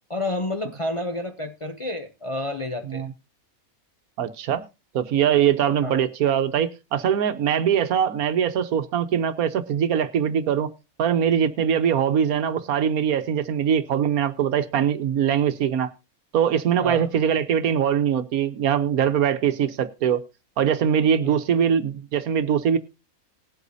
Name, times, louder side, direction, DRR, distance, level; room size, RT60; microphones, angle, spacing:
voice 1, 0.1-3.1 5.8-6.0 16.8-17.1 21.2-21.3, left 1 dB, 35° left, 0.5 m, -30 dB
voice 2, 4.2-4.6 4.9-10.7 11.0-15.9 16.3-20.2 20.6-22.8, right 8 dB, 80° right, 1.3 m, -22 dB
20.0 x 8.1 x 2.7 m
omnidirectional pair, 1.5 m